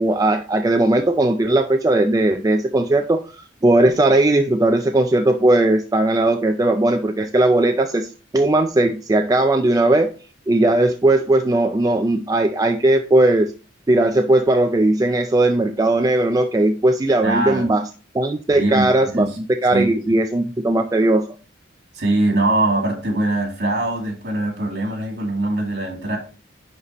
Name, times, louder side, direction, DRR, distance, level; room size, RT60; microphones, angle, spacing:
voice 1, 0.0-10.1 10.5-13.5 13.9-17.8 18.1-19.3 19.6-21.3, right 2 dB, 20° right, 5 dB, 0.3 m, -18 dB
voice 2, 17.2-17.7 18.5-19.3 19.7-19.9 22.0-26.2, right 2 dB, 55° right, 1 dB, 2.4 m, -22 dB
10.5 x 4.1 x 2.9 m, 0.37 s
head